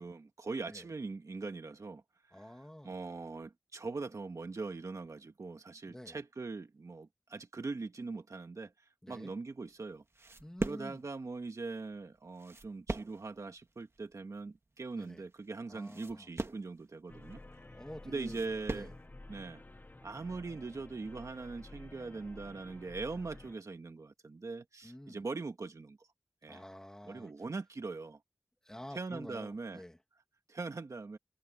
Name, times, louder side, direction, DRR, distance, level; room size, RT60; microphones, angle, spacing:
voice 1, 0.0-2.0 2.3-2.5 2.8-10.0 10.6-17.4 18.0-18.9 19.3-19.6 20.0-26.1 26.4-26.6 27.1-28.2 28.9-29.8 30.5-31.2, right 3 dB, 75° right, 1.6 m, -41 dB
voice 2, 2.3-2.9 5.9-6.2 9.0-9.3 10.4-11.0 15.0-15.2 15.7-16.3 17.7-18.4 18.7-18.9 24.8-25.2 26.5-27.3 28.6-30.0, left 1 dB, 10° left, 2.1 m, -48 dB
sound 1, 9.5-19.1, right 2 dB, 50° right, 2.4 m, -42 dB
sound 2, 17.1-23.5, left 2 dB, 30° left, 0.9 m, -52 dB
wide cardioid pair, 50°, 6 cm